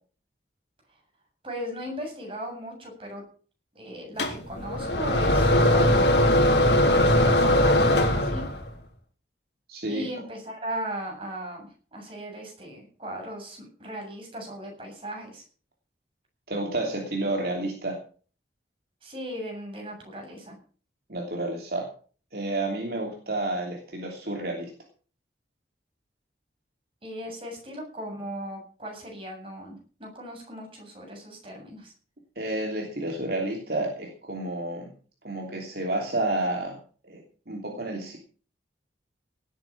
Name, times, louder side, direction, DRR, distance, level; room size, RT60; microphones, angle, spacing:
voice 1, 1.4-3.2 3.7-6.1 6.9-8.4 9.9-15.4 19.0-20.6 27.0-31.9, equal, 30° right, 1 dB, 7.8 m, -37 dB
sound 1, 4.2-8.7, left 1 dB, 75° left, 3.3 m, -20 dB
voice 2, 9.7-10.1 16.5-18.0 21.1-21.9 22.3-24.7 32.4-34.9 35.2-36.8 37.0-38.2, right 2 dB, 55° right, 0 dB, 3.1 m, -30 dB
18.0 x 9.4 x 6.1 m, 0.42 s
head